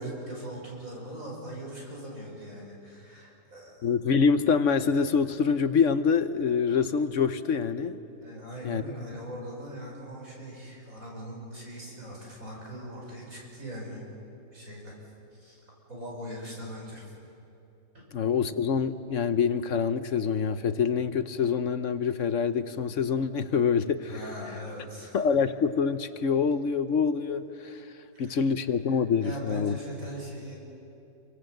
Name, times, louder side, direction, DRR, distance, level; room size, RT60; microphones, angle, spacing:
voice 1, 0.0-3.9 8.2-14.0 14.5-14.9 15.4-15.6 15.9-17.1 17.9-18.1 24.1-25.2 28.1-28.4 28.9-30.6, equal, 65° right, -3 dB, 6.5 m, -41 dB
voice 2, 3.8-8.0 8.6-8.8 18.1-24.1 25.1-27.8 28.2-29.8, left 6 dB, 60° left, 11 dB, 1.1 m, -26 dB
27.0 x 24.5 x 7.9 m, 2.9 s
omnidirectional pair, 1.6 m